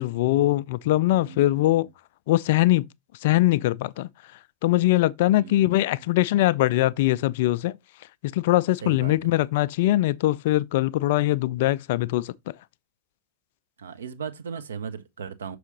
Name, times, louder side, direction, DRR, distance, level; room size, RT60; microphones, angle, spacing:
voice 1, 0.0-1.9 2.3-2.8 3.2-4.1 4.6-7.8 8.3-12.3, left 16 dB, 50° left, 0.3 m, -22 dB
voice 2, 1.1-1.9 5.4-6.0 8.8-9.1 13.8-15.6, right 6 dB, 65° right, 0.8 m, -37 dB
6.4 x 4.8 x 3.9 m
figure-of-eight pair, 90°, 0 cm